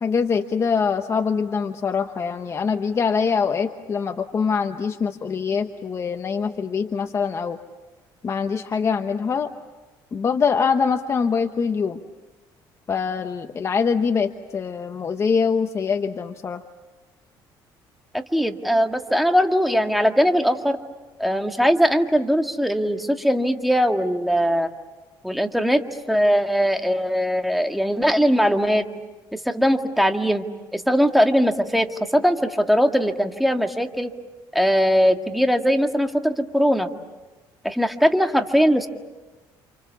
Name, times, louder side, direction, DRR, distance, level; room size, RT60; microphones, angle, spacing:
voice 1, 0.0-7.6 8.2-9.5 10.1-12.0 12.9-16.6, left 5 dB, 30° left, 7 dB, 1.1 m, -24 dB
voice 2, 18.1-20.8 21.2-24.7 25.2-25.8 26.1-28.9 29.3-30.4 30.7-34.1 34.5-36.9 37.6-38.9, equal, ahead, 5 dB, 1.8 m, -20 dB
30.0 x 27.5 x 7.0 m, 1.2 s
cardioid pair, 120°, 9 cm